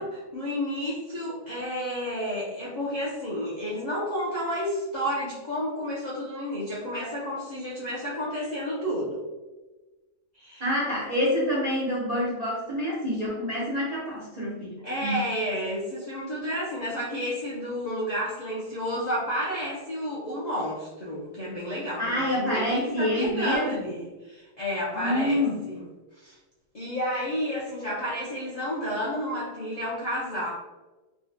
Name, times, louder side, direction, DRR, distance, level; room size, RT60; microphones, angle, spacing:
voice 1, 0.0-9.2 10.3-10.7 14.8-25.9 26.2-26.3 26.7-30.5, equal, 65° left, -8 dB, 0.4 m, -31 dB
voice 2, 10.6-15.2 22.0-23.9 24.9-25.6, left 1 dB, 85° right, -6 dB, 0.3 m, -27 dB
3.6 x 2.1 x 2.5 m, 1.2 s
omnidirectional pair, 1.6 m